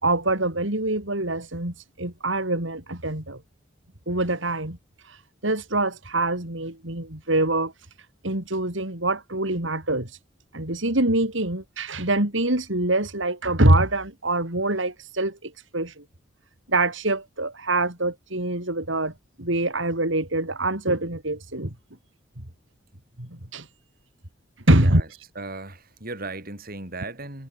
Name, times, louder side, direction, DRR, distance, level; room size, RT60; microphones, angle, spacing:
voice 1, 0.0-3.4 4.1-4.8 5.0-7.7 8.2-10.2 10.5-16.0 16.7-19.1 19.4-21.7 23.2-23.7 24.7-25.0, right 2 dB, 70° right, 4.5 m, -24 dB
voice 2, 24.7-25.1 25.3-27.5, right 2 dB, 45° right, 7.8 m, -36 dB
head